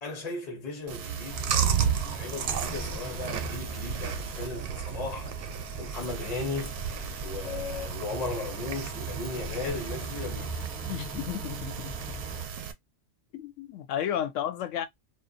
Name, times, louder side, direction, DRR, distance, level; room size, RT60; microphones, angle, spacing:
voice 1, 0.0-5.3 5.8-6.8 7.2-10.6, left 3 dB, 40° left, 0.7 m, -36 dB
Chewing mastication, 0.9-12.7, right 8 dB, 80° right, 0.9 m, -33 dB
Bus, 1.3-12.5, right 1 dB, 10° left, 0.3 m, -41 dB
voice 2, 10.9-12.2 13.3-14.9, left 10 dB, 90° left, 0.9 m, -33 dB
2.5 x 2.2 x 2.5 m
omnidirectional pair, 1.2 m